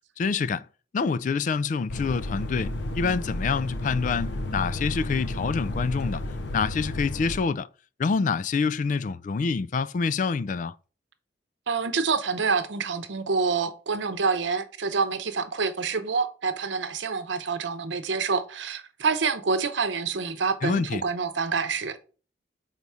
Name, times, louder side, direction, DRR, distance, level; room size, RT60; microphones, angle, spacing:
voice 1, 0.2-0.6 0.9-6.2 6.5-7.7 8.0-10.7 20.6-21.0, left 5 dB, 45° left, 0.3 m, -26 dB
sound 1, 1.9-7.4, left 1 dB, 70° left, 0.7 m, -32 dB
voice 2, 11.7-22.0, right 5 dB, 85° right, 0.8 m, -27 dB
4.7 x 4.0 x 5.5 m
head